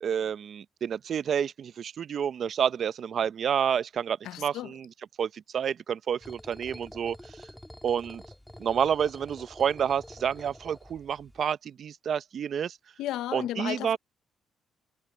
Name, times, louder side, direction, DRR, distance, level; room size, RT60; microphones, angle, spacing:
voice 1, 0.0-4.9 5.2-7.2 7.8-8.2 8.6-12.8 13.3-14.0, right 8 dB, 60° right, 0.6 m, -29 dB
voice 2, 4.2-4.7 13.0-14.0, left 13 dB, 90° left, 0.6 m, -34 dB
sound 1, 6.2-11.4, left 1 dB, 5° left, 1.5 m, -48 dB
cardioid pair, 90°, 0 cm